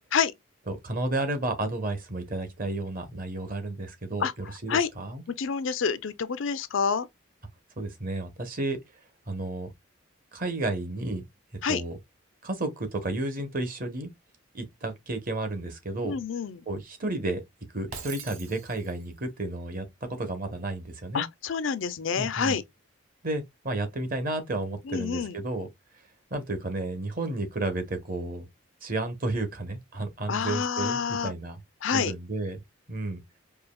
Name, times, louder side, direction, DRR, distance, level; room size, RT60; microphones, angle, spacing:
voice 1, 0.7-5.2 7.8-8.8 9.3-9.7 10.3-11.2 11.7-12.0 12.4-14.1 14.5-16.1 16.7-17.4 17.7-19.8 20.2-21.2 22.1-22.6 23.2-25.7 26.3-28.5 28.8-31.6 31.9-32.6 32.9-33.2, right 2 dB, 45° right, 1.0 m, -32 dB
voice 2, 4.2-4.9 5.3-7.1 11.6-11.8 16.0-16.6 21.1-22.6 24.8-25.4 30.3-31.3 31.8-32.1, left 6 dB, 70° left, 0.5 m, -28 dB
Shatter, 17.9-19.1, right 6 dB, 90° right, 1.0 m, -42 dB
4.8 x 2.8 x 2.3 m
head